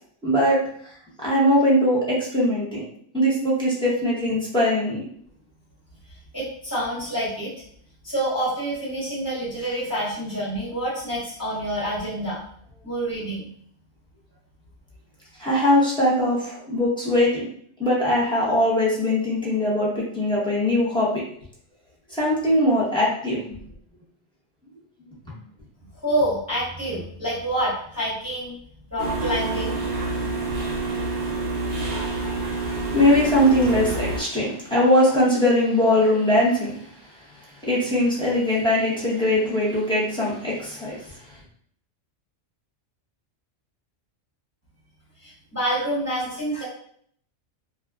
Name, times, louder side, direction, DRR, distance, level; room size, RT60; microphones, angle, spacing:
voice 1, 0.2-0.9 1.2-2.8 3.1-5.1 15.4-17.4 17.8-21.2 22.1-23.6 32.6-36.8 37.6-41.1, left 1 dB, 5° left, -7 dB, 0.4 m, -21 dB
voice 2, 6.3-7.5 8.0-12.4 12.8-13.5 26.0-28.5 28.9-29.8 45.2-46.6, right 1 dB, 15° right, -11 dB, 0.9 m, -27 dB
sound 1, 29.0-34.2, right 3 dB, 55° right, 0.8 m, -27 dB
2.6 x 2.3 x 2.3 m, 0.63 s
omnidirectional pair, 1.3 m